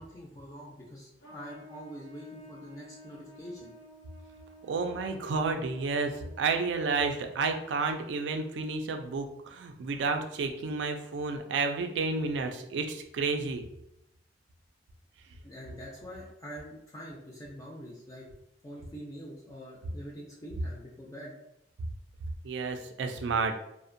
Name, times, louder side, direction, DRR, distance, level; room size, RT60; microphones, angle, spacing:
voice 1, 0.0-3.7 15.4-18.3 18.6-21.3, equal, 20° left, -4 dB, 0.4 m, -45 dB
Trumpet, 1.2-7.7, equal, 90° left, 0.8 m, -53 dB
voice 2, 4.6-13.6 22.4-23.6, right 4 dB, 75° right, 5 dB, 0.3 m, -31 dB
2.5 x 2.1 x 2.5 m, 0.81 s
head